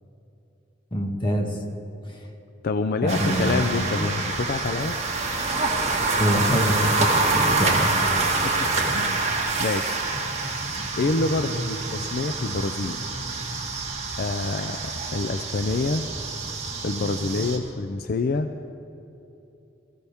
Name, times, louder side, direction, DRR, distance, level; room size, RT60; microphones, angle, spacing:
voice 1, 0.9-1.5 2.1-2.2 3.0-3.5 3.9-4.1 6.1-7.9 8.9-9.0, equal, 25° left, 1 dB, 1.7 m, -25 dB
voice 2, 2.6-5.0 8.4-8.5 8.8-10.1 11.0-13.0 14.2-16.1 16.8-18.5, left 3 dB, 50° left, 8 dB, 0.5 m, -27 dB
sound 1, 3.1-17.6, right 3 dB, 35° right, 1.8 m, -26 dB
22.0 x 15.0 x 3.6 m, 2.9 s
head